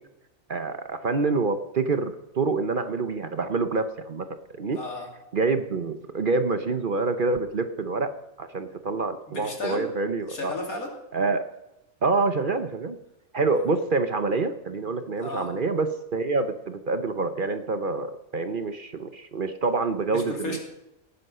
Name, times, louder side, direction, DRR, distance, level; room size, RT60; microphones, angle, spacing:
voice 1, 0.5-4.8 5.3-8.1 8.4-10.5 11.1-11.4 12.0-13.0 13.3-20.6, right 3 dB, 45° right, 9 dB, 0.9 m, -27 dB
voice 2, 4.7-5.1 9.3-9.8 10.3-10.9 15.2-15.5 20.1-20.6, left 2 dB, 90° left, 1 dB, 3.3 m, -33 dB
17.5 x 9.6 x 5.6 m, 0.90 s
omnidirectional pair, 1.5 m